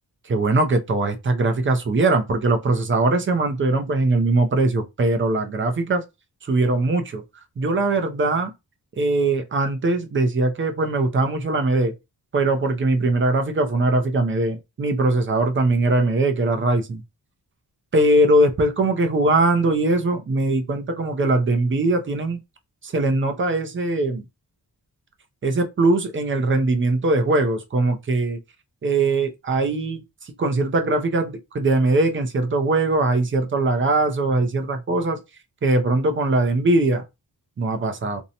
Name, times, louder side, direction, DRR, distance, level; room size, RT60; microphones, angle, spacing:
voice 1, 0.3-6.0 6.5-7.2 7.6-8.5 9.0-11.9 12.3-17.0 17.9-22.4 22.8-24.2 25.4-28.4 28.8-30.0 30.4-35.2 35.6-37.0 37.6-38.2, right 2 dB, 35° right, 0.4 m, -21 dB
2.6 x 2.0 x 2.7 m
wide cardioid pair, 170°, 38 cm